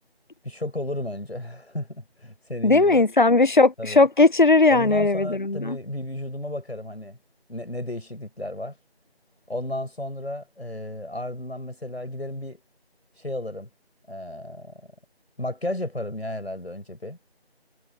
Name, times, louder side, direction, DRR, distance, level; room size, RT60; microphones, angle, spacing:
voice 1, 0.4-3.1 3.8-4.1 4.7-7.2 7.5-8.8 9.5-12.6 13.2-13.7 14.1-14.7 15.4-17.2, left 1 dB, 75° left, 7.8 m, -33 dB
voice 2, 2.6-5.8, left 3 dB, 50° left, 0.7 m, -18 dB
figure-of-eight pair, 170°, 32 cm